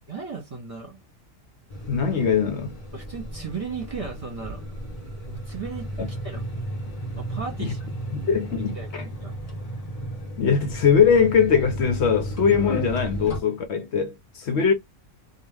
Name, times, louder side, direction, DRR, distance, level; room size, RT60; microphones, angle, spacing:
voice 1, 0.1-1.0 2.9-4.6 5.2-6.4 7.2-7.8 8.1-8.3 8.6-9.3 14.5-14.6, right 5 dB, 30° right, 1.1 m, -36 dB
sound 1, 1.7-13.4, right 1 dB, 30° left, 1.1 m, -34 dB
voice 2, 1.9-2.8 6.0-6.1 7.6-7.7 8.3-8.8 10.4-14.7, left 6 dB, 65° left, 0.9 m, -21 dB
2.8 x 2.4 x 3.3 m
omnidirectional pair, 1.3 m